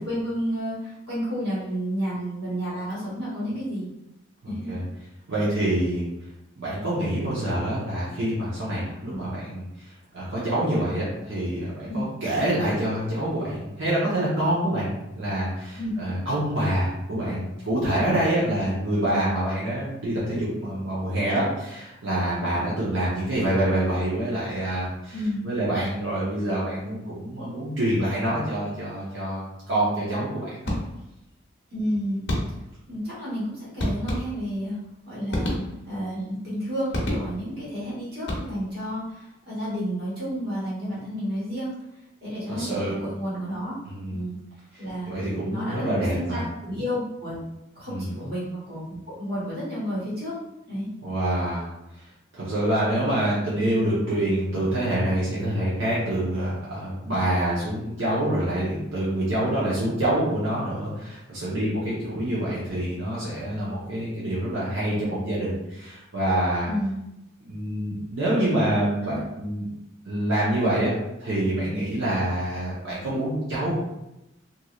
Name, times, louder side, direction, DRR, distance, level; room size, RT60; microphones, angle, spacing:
voice 1, 0.0-3.9 4.4-4.7 9.1-9.3 11.9-12.0 15.8-15.9 25.1-25.4 31.7-32.2 32.9-34.8 35.1-35.6 35.8-41.7 42.2-43.7 44.1-44.4 44.8-47.4 47.7-50.4 50.7-50.9 66.6-67.0 69.0-69.2, equal, 50° right, -8 dB, 1.4 m, -31 dB
voice 2, 4.4-4.8 5.3-6.1 6.6-14.9 15.2-25.1 25.4-30.7 42.5-43.0 43.8-44.2 44.7-46.4 47.9-48.1 51.0-51.7 52.0-52.1 52.3-66.7 67.4-69.7 70.0-70.9 71.2-73.8, right 1 dB, 80° right, -8 dB, 0.9 m, -26 dB
sound 1, 30.6-31.2 32.3-32.8 33.8-34.7 35.3-36.1 36.9-37.6 38.2-38.8, left 1 dB, 60° left, 0.7 m, -29 dB
3.0 x 2.6 x 2.4 m, 0.91 s
head